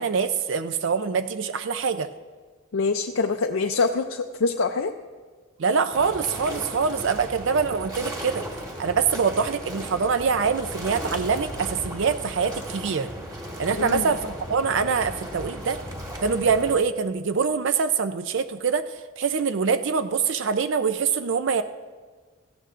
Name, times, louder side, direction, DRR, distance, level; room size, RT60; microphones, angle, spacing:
voice 1, 0.0-2.1 5.6-8.4 8.8-13.1 13.6-15.8 16.2-21.6, right 5 dB, 60° right, 10 dB, 0.4 m, -24 dB
voice 2, 2.7-4.9 13.8-14.1, left 4 dB, 70° left, 5 dB, 0.5 m, -25 dB
sound 1, 5.9-16.8, right 1 dB, 20° right, 1.6 m, -36 dB
17.5 x 14.5 x 2.5 m, 1.5 s
head